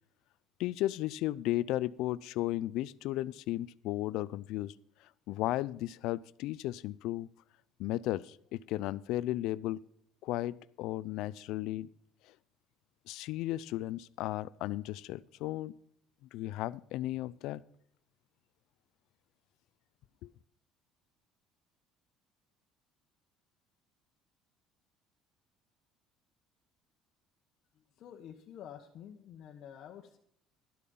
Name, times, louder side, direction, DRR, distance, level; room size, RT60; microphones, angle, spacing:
voice 1, 0.6-4.7 5.3-7.3 7.8-9.8 10.2-11.9 13.1-15.7 16.3-17.6 20.2-20.3, left 15 dB, 75° left, 20 dB, 0.4 m, -35 dB
voice 2, 27.7-30.2, left 9 dB, 55° left, 1 dB, 1.1 m, -49 dB
12.0 x 8.5 x 5.5 m, 0.69 s
cardioid pair, 110°, 0 cm